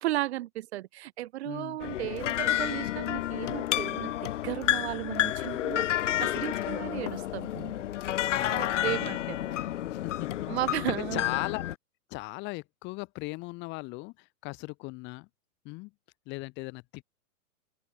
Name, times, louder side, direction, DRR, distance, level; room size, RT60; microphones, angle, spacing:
voice 1, 0.0-4.2 4.4-5.8 6.2-7.8 8.5-9.6 10.5-11.2, right 15 dB, 45° right, 4.9 m, -35 dB
voice 2, 1.4-1.8 8.3-9.1 9.9-10.5 10.9-11.6 12.1-15.3 15.6-15.9 16.3-17.0, left 25 dB, 25° left, 3.0 m, -38 dB
sound 1, 1.8-11.7, left 13 dB, 55° left, 1.9 m, -30 dB
open air
hypercardioid pair, 170°, 44 cm